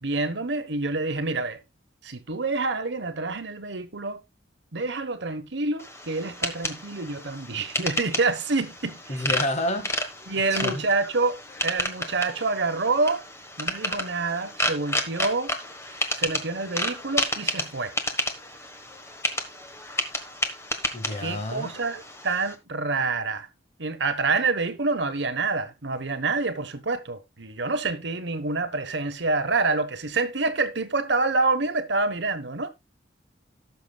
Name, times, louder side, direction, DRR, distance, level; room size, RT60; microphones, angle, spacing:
voice 1, 0.0-1.6 2.0-4.2 4.7-9.2 10.3-11.4 11.6-13.2 13.6-15.5 16.1-17.9 21.2-23.5 23.8-32.7, right 3 dB, 65° right, 1.2 m, -27 dB
sound 1, 5.8-22.5, left 1 dB, 15° left, 1.3 m, -31 dB
voice 2, 9.1-10.0 10.5-10.8 20.9-21.7, left 1 dB, 40° left, 1.8 m, -29 dB
18.0 x 6.4 x 2.3 m
head